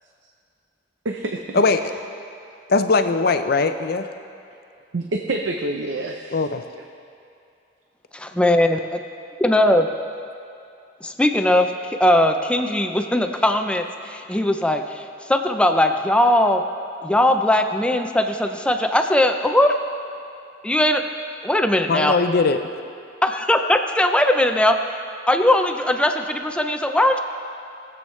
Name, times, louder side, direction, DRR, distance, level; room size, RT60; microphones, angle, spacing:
voice 1, 1.0-1.6 4.9-6.4, right 2 dB, 85° right, 3 dB, 0.6 m, -27 dB
voice 2, 2.7-4.1 6.3-6.6 21.9-22.6, left 4 dB, 55° left, 8 dB, 0.6 m, -20 dB
voice 3, 8.1-9.0 9.4-9.9 11.0-16.6 17.0-19.8 20.6-21.0 21.4-22.1 23.2-24.8 25.3-27.2, left 1 dB, 5° left, 6 dB, 0.5 m, -19 dB
20.5 x 7.9 x 3.2 m, 2.5 s
head